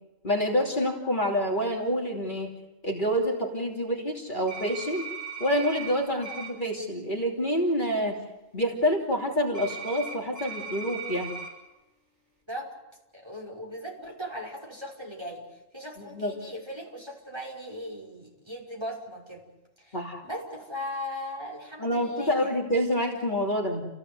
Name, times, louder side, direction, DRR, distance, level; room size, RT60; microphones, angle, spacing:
voice 1, 0.2-2.5 2.8-5.1 5.4-8.2 8.5-11.3 16.0-16.3 19.9-20.2 21.8-23.9, equal, 40° left, -1 dB, 3.1 m, -27 dB
sound 1, 4.5-5.9 6.2-6.5 9.5-11.5, right 5 dB, 80° right, 7.9 m, -38 dB
voice 2, 13.1-15.4 15.7-19.4 19.8-22.6, equal, 20° right, -2 dB, 5.9 m, -38 dB
29.5 x 16.5 x 8.1 m, 1.0 s
omnidirectional pair, 1.3 m